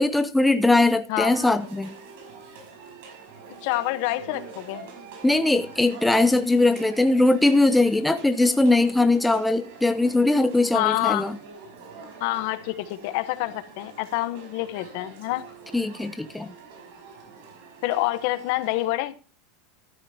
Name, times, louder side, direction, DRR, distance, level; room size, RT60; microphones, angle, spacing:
voice 1, 0.0-1.9 5.2-11.4 15.7-16.5, left 2 dB, 5° left, 0.5 m, -20 dB
sound 1, 1.2-18.9, right 4 dB, 70° right, 5.4 m, -45 dB
voice 2, 3.6-4.9 10.7-11.3 12.2-15.4 17.8-19.2, left 17 dB, 55° left, 0.9 m, -27 dB
13.0 x 12.0 x 2.8 m
supercardioid pair, 150°, 0 cm